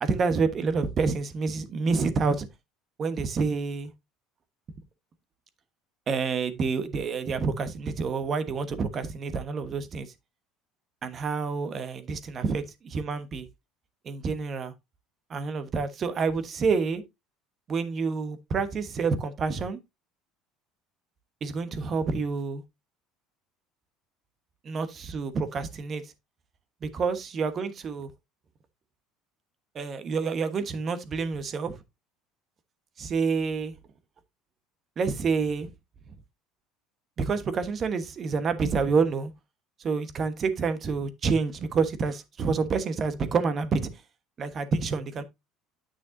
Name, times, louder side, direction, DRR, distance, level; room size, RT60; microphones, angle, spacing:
voice 1, 0.0-2.5 3.0-3.9 6.1-10.1 11.0-13.5 14.0-14.7 15.3-17.0 17.7-19.8 21.4-22.6 24.6-26.0 26.8-28.1 29.7-31.8 33.0-33.7 35.0-35.7 37.2-39.3 39.8-43.9 44.4-45.2, right 4 dB, 35° right, 1.2 m, -28 dB
9.6 x 6.3 x 2.7 m
cardioid pair, 120°, 0 cm